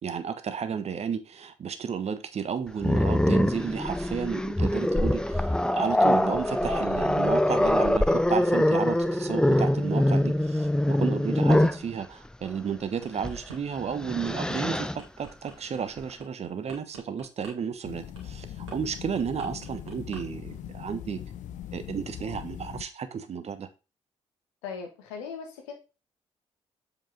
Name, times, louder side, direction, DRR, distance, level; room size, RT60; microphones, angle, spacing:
voice 1, 0.0-14.9 15.2-21.2 21.7-23.7, right 7 dB, 45° right, 1.1 m, -33 dB
Growling, 2.8-11.9 13.2-13.4 13.8-15.0, left 1 dB, 5° left, 0.5 m, -24 dB
sound 1, 12.8-13.6 14.0-20.2 20.5-20.8, right 4 dB, 85° right, 1.7 m, -47 dB
sound 2, 17.8-22.8, left 10 dB, 60° left, 0.7 m, -40 dB
voice 2, 24.6-25.7, left 6 dB, 75° left, 1.5 m, -38 dB
7.6 x 5.2 x 3.9 m
figure-of-eight pair, 40°, 15 cm